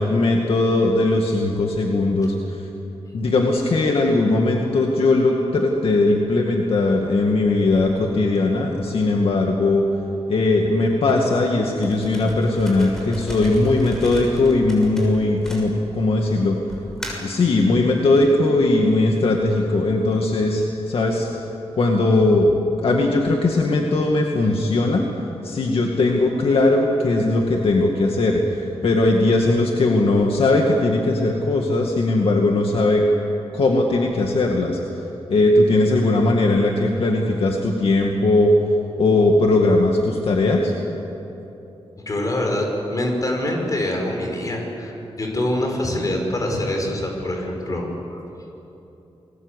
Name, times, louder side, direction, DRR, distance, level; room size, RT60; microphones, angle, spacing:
voice 1, 0.0-2.6 3.1-9.8 10.3-16.6 17.2-21.3 21.8-25.0 25.4-33.0 33.5-34.8 35.3-38.5 39.0-40.7, left 2 dB, 60° left, 1 dB, 2.2 m, -19 dB
sound 1, 11.8-16.1 16.7-17.4, right 1 dB, 5° left, 6.5 m, -35 dB
voice 2, 42.0-48.2, left 1 dB, 35° left, 1 dB, 5.5 m, -25 dB
29.0 x 21.5 x 8.3 m, 3.0 s
wide cardioid pair, 140°, 11 cm